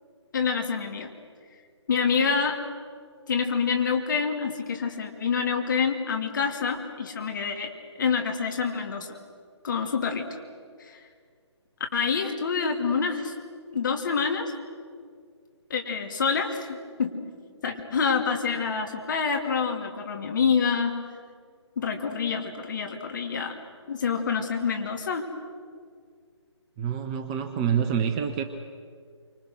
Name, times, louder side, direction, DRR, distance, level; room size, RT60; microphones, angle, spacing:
voice 1, 0.3-1.1 1.9-2.6 3.3-7.7 8.0-9.2 9.6-10.3 10.8-11.0 11.9-13.3 13.7-14.5 15.7-17.1 17.6-20.9 21.8-23.6 23.9-25.2, left 6 dB, 40° left, 3 dB, 2.7 m, -27 dB
voice 2, 26.8-28.4, right 8 dB, 15° right, 8 dB, 0.6 m, -27 dB
27.0 x 25.0 x 6.4 m, 2.1 s
figure-of-eight pair, 145°, 15 cm